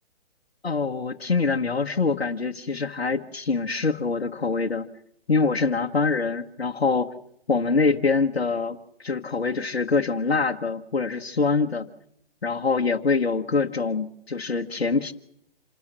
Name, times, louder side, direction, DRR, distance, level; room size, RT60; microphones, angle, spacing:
voice 1, 0.6-4.9 5.3-7.1 7.5-11.9 12.4-15.1, left 4 dB, 75° left, 3 dB, 1.2 m, -24 dB
27.0 x 13.0 x 7.7 m, 0.73 s
figure-of-eight pair, 135°, 31 cm